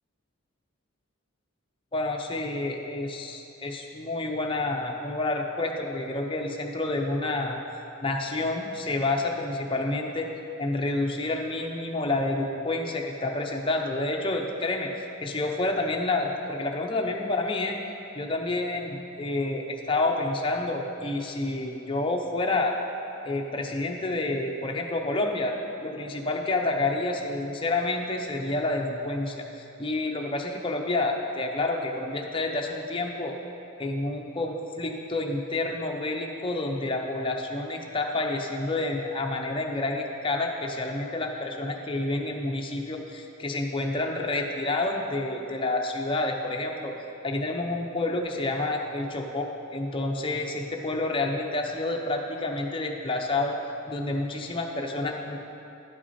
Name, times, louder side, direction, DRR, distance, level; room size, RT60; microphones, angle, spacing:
voice 1, 1.9-7.6 8.0-10.3 10.6-14.9 15.2-17.8 18.1-22.7 23.2-25.5 25.8-33.3 33.8-46.9 47.2-53.6 53.9-55.4, left 2 dB, 25° left, 1 dB, 0.6 m, -29 dB
11.0 x 6.1 x 4.2 m, 2.8 s
head